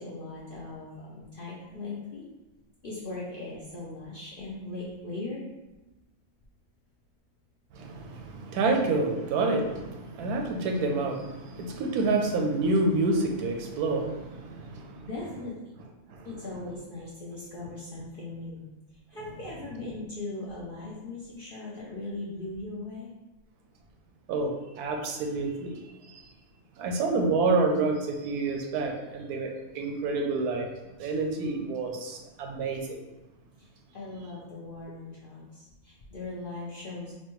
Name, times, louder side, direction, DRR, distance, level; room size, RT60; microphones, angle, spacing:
voice 1, 0.0-2.2 2.8-5.5 15.0-15.7 16.2-18.7 19.1-23.1 33.6-37.1, left 2 dB, 60° left, -6 dB, 0.5 m, -39 dB
voice 2, 7.7-15.1 16.1-16.3 24.3-26.2 26.8-30.7 31.0-33.0, right 3 dB, 85° right, 3 dB, 1.1 m, -28 dB
4.2 x 2.2 x 2.9 m, 1.0 s
omnidirectional pair, 1.6 m